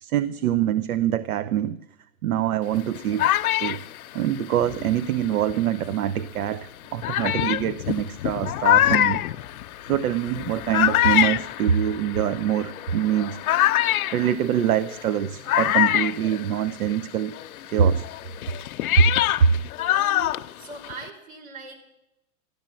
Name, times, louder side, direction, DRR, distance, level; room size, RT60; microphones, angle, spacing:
voice 1, 0.0-1.8 2.2-3.3 3.6-3.8 4.1-9.2 9.9-13.4 14.1-17.4 17.7-18.1 18.9-19.1 19.4-19.5, right 9 dB, 85° right, 16 dB, 0.8 m, -24 dB
sound 1, 2.7-5.8 6.4-6.5 7.0-17.0 17.3-21.1, left 13 dB, 85° left, 0.7 m, -25 dB
voice 2, 19.8-21.8, right 3 dB, 70° right, 2 dB, 5.6 m, -40 dB
14.0 x 12.0 x 7.5 m, 0.85 s
hypercardioid pair, 130°, 42 cm